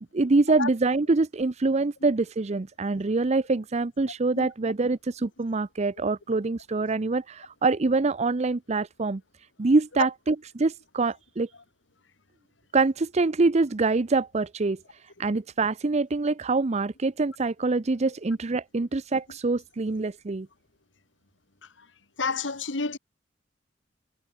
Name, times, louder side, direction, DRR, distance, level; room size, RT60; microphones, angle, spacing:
voice 1, 0.1-9.2 9.6-11.5 12.7-14.8 15.2-20.5, right 3 dB, 35° right, 0.6 m, -25 dB
voice 2, 22.2-23.0, left 4 dB, 80° left, 1.7 m, -28 dB
head